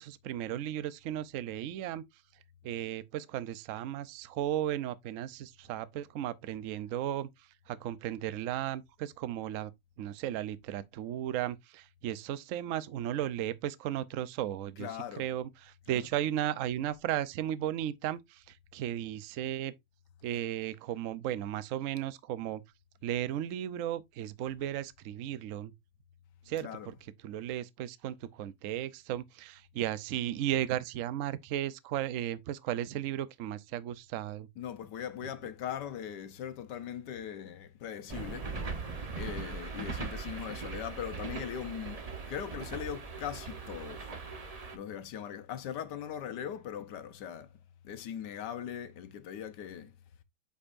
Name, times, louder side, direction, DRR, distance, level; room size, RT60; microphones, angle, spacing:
voice 1, 0.0-2.0 2.6-7.3 7.7-9.7 10.0-14.9 15.2-19.7 20.2-22.6 23.0-25.7 26.5-26.9 27.2-34.5, right 11 dB, 70° right, 0.8 m, -35 dB
voice 2, 14.8-15.3 15.9-16.0 26.6-26.9 34.6-38.5 39.2-42.0 42.3-44.1 44.7-47.5 47.8-49.9, left 9 dB, 70° left, 1.4 m, -40 dB
sound 1, 38.1-44.8, right 4 dB, 30° right, 0.7 m, -40 dB
8.3 x 5.3 x 2.5 m
omnidirectional pair, 2.0 m